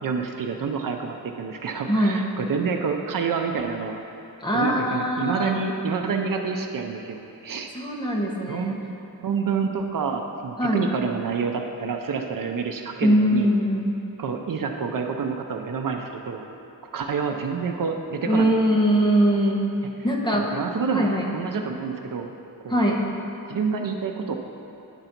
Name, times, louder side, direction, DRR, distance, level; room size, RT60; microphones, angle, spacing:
voice 1, 0.0-4.0 4.5-7.7 8.5-8.8 9.2-13.5 14.2-16.5 16.9-18.8 20.5-22.3 22.6-22.8 23.5-24.4, right 5 dB, 65° right, 4 dB, 0.6 m, -28 dB
voice 2, 1.9-2.3 4.4-5.7 7.7-8.8 10.6-10.8 13.0-14.0 18.3-19.6 20.0-20.5 20.9-21.3 22.7-23.1, equal, 10° left, -2 dB, 0.9 m, -22 dB
10.0 x 3.9 x 5.8 m, 2.8 s
wide cardioid pair, 150°, 36 cm